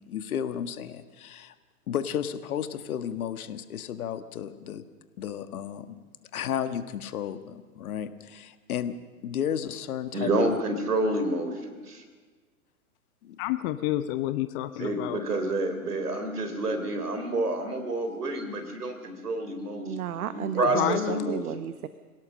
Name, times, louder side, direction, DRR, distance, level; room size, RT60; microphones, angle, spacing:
voice 1, 0.0-1.5 1.9-4.8 5.2-6.0 6.3-8.9 9.2-10.6 13.2-13.4, left 9 dB, 70° left, 11 dB, 1.6 m, -33 dB
voice 2, 10.1-12.0 14.8-20.0 20.3-21.5, right 2 dB, 85° right, 7 dB, 3.7 m, -29 dB
voice 3, 13.4-15.2 20.6-21.3, left 15 dB, 40° left, 11 dB, 0.9 m, -29 dB
voice 4, 19.9-21.9, right 11 dB, 70° right, 12 dB, 1.2 m, -33 dB
26.0 x 17.5 x 6.4 m, 1.4 s
hypercardioid pair, 110°, 45 cm